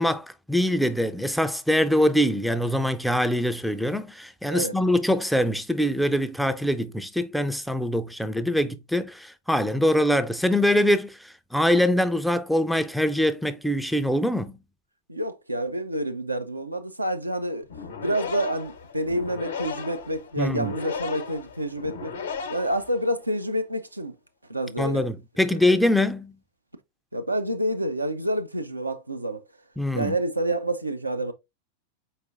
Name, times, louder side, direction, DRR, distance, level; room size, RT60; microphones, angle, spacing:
voice 1, 0.0-14.5 20.4-20.7 24.8-26.3 29.8-30.1, left 1 dB, ahead, 0.4 m, -23 dB
voice 2, 15.1-17.7 18.0-22.2 22.5-24.1 24.5-25.0 25.5-25.6 27.1-29.4 29.9-31.3, right 1 dB, 85° right, 0.5 m, -28 dB
sound 1, 17.6-23.3, left 6 dB, 65° left, 0.8 m, -36 dB
4.8 x 4.1 x 2.5 m
figure-of-eight pair, 90°, 0 cm